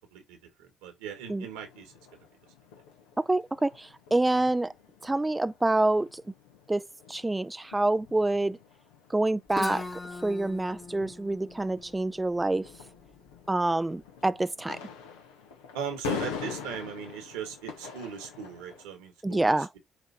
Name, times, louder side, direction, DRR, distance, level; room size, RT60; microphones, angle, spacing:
voice 1, 0.1-1.9 4.4-4.5 11.0-11.2 15.7-19.8, right 8 dB, 80° right, 1.6 m, -39 dB
sound 1, 1.0-18.9, left 7 dB, 85° left, 1.1 m, -44 dB
voice 2, 3.2-4.7 5.0-6.2 6.7-8.6 9.1-9.9 10.2-12.7 13.5-14.8 19.2-19.7, right 2 dB, 20° right, 0.4 m, -27 dB
Guitar, 9.5-13.3, left 3 dB, 30° left, 1.3 m, -40 dB
8.1 x 3.1 x 4.3 m
hypercardioid pair, 45°, 0 cm